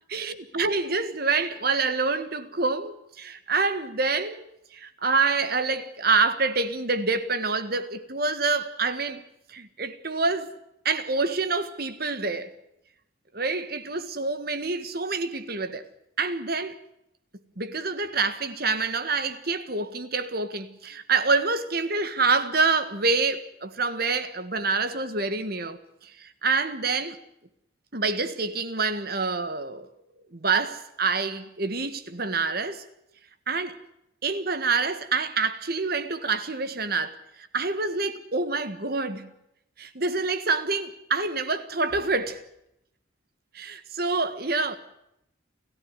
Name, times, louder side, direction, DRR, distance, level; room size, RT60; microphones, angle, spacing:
voice 1, 0.1-4.4 4.7-10.5 10.8-12.5 13.3-15.8 16.2-16.8 17.6-27.2 27.9-29.9 30.3-32.8 33.5-33.8 34.2-39.3 39.8-42.4 43.5-44.8, right 4 dB, 50° right, 1.6 m, -27 dB
30.0 x 14.0 x 9.7 m
head